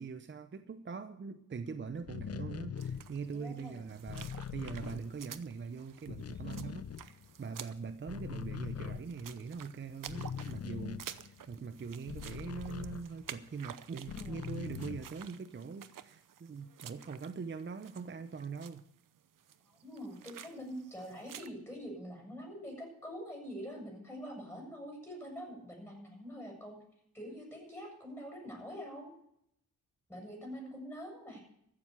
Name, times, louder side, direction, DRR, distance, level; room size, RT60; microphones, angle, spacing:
voice 1, 0.0-18.8, right 5 dB, 35° right, 9 dB, 0.7 m, -42 dB
sound 1, 2.0-5.6 5.9-7.6 7.9-13.5 14.0-15.3, left 8 dB, 45° left, 0.7 m, -43 dB
sound 2, 2.8-21.5, right 9 dB, 65° right, 0.8 m, -52 dB
voice 2, 3.3-3.9 14.1-14.5 19.7-26.8 27.1-29.1 30.1-31.4, equal, 5° left, 1 dB, 7.3 m, -45 dB
14.5 x 7.5 x 8.3 m, 0.75 s
cardioid pair, 85°, 35 cm